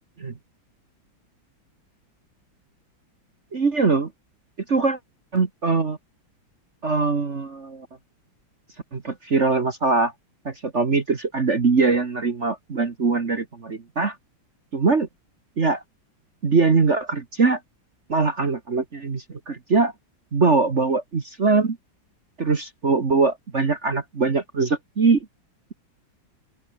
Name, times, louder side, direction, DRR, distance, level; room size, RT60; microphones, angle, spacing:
voice 1, 3.5-4.1 4.7-5.0 5.3-6.0 6.8-7.9 8.9-10.1 10.5-14.2 14.7-15.1 15.6-15.8 16.4-17.6 18.1-19.9 20.3-21.8 22.4-25.2, right 4 dB, 35° right, 1.8 m, -22 dB
open air
omnidirectional pair, 2.2 m